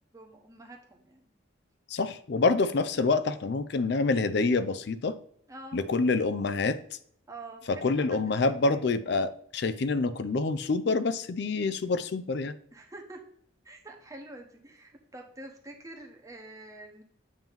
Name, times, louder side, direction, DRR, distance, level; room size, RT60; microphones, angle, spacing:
voice 1, 0.1-1.3 5.5-5.8 7.3-8.8 12.7-13.2 13.6-17.0, right 2 dB, 15° right, 1 dB, 1.0 m, -46 dB
voice 2, 1.9-5.2 5.7-6.8 7.7-12.5, left 3 dB, 55° left, 12 dB, 0.4 m, -27 dB
7.4 x 3.0 x 5.2 m, 0.64 s
head